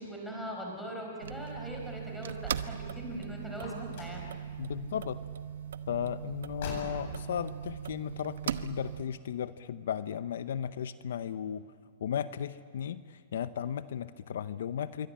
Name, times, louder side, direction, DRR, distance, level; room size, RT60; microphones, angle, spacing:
voice 1, 0.0-4.3, equal, ahead, -1 dB, 4.8 m, -40 dB
sound 1, 1.2-9.0, right 9 dB, 75° right, 0.9 m, -39 dB
Car, 3.5-4.3 6.4-7.3, left 4 dB, 50° left, 8.0 m, -41 dB
voice 2, 4.6-5.2 5.9-11.7 12.0-15.1, left 9 dB, 70° left, 14 dB, 0.7 m, -35 dB
26.5 x 23.5 x 8.8 m, 2.1 s
hypercardioid pair, 165°, 0 cm